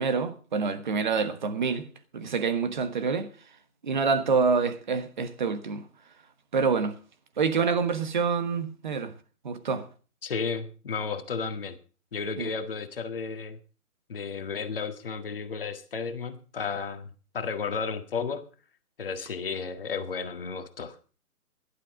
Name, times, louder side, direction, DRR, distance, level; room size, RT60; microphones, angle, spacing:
voice 1, 0.0-1.9 2.1-3.3 3.8-5.9 6.5-7.0 7.4-9.1 9.4-9.9 12.4-12.5, right 5 dB, 30° right, 1.3 m, -27 dB
voice 2, 10.2-11.8 12.1-13.6 14.1-17.1 17.3-18.4 19.0-20.9, left 5 dB, 35° left, 1.7 m, -33 dB
17.5 x 12.0 x 3.7 m
hypercardioid pair, 170°, 46 cm